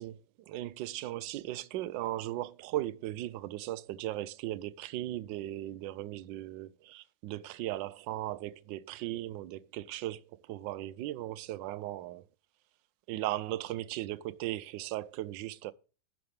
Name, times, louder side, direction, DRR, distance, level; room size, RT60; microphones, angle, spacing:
voice 1, 0.0-12.2 13.1-15.7, right 15 dB, 75° right, 1.2 m, -37 dB
11.0 x 7.8 x 3.3 m
omnidirectional pair, 2.2 m